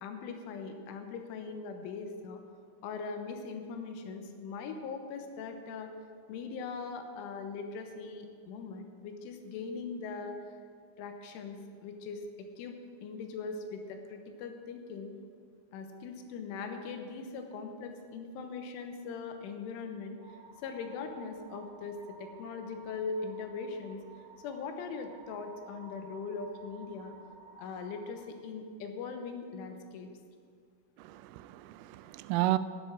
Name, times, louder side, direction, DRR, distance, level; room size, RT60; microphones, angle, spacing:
voice 1, 0.0-2.4 2.8-5.9 6.3-10.4 11.0-11.6 11.8-12.8 13.0-15.1 15.7-24.0 24.4-27.1 27.5-30.1, left 4 dB, 80° left, 5 dB, 3.5 m, -40 dB
sound 1, 20.2-28.2, right 4 dB, 60° right, 1.2 m, -53 dB
voice 2, 31.0-32.6, right 16 dB, 90° right, 14 dB, 3.1 m, -32 dB
13.5 x 11.0 x 6.2 m, 2.2 s
omnidirectional pair, 5.7 m